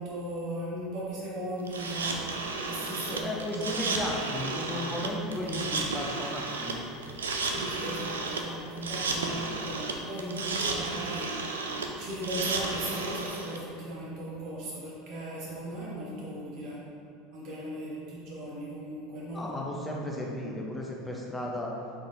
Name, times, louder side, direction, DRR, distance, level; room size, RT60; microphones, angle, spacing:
voice 1, 0.0-3.9 5.4-5.5 7.4-11.4 12.0-16.9 17.3-19.5, right 1 dB, 55° right, -6 dB, 1.1 m, -37 dB
sound 1, 1.7-13.6, right 3 dB, 85° right, 0.3 m, -33 dB
voice 2, 3.1-6.8 19.3-21.7, left 1 dB, 10° left, -2 dB, 0.5 m, -34 dB
3.9 x 3.6 x 2.5 m, 2.5 s
hypercardioid pair, 80°, 0 cm